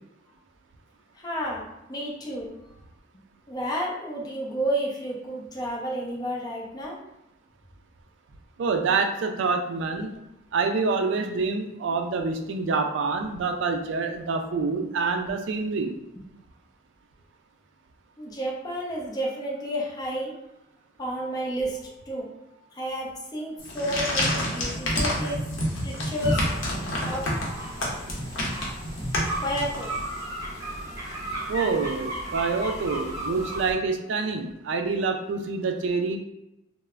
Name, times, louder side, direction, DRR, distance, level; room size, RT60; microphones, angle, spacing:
voice 1, 1.1-2.5 3.5-7.0 18.2-20.3 21.0-22.3 22.7-25.5 25.8-26.5 27.0-27.4 29.4-29.9, equal, 20° left, -3 dB, 0.5 m, -31 dB
voice 2, 8.6-10.1 10.5-16.0 31.5-36.2, right 4 dB, 65° right, 5 dB, 0.3 m, -26 dB
sound 1, 23.6-30.2, left 1 dB, 85° left, 0.7 m, -28 dB
sound 2, 26.1-33.7, right 1 dB, 15° right, 0.9 m, -35 dB
3.1 x 2.0 x 2.3 m, 0.89 s
head